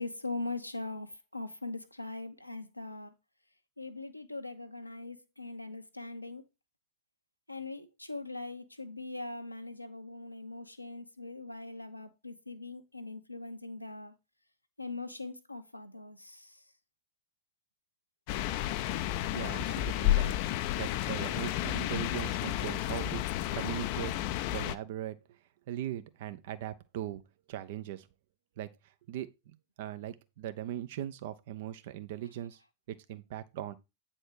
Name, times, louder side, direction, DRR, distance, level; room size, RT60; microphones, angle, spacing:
voice 1, 0.0-3.1 3.8-6.4 7.5-14.1 14.8-16.5, left 2 dB, 85° left, 0.9 m, -41 dB
sound 1, 18.3-24.8, left 14 dB, 45° left, 0.5 m, -31 dB
voice 2, 19.3-20.3 20.8-23.2 23.5-24.1 24.5-25.2 25.7-27.2 27.5-28.1 28.6-28.7 29.1-32.6 32.9-33.7, right 12 dB, 55° right, 0.8 m, -39 dB
8.8 x 4.4 x 4.7 m
figure-of-eight pair, 90°, 0 cm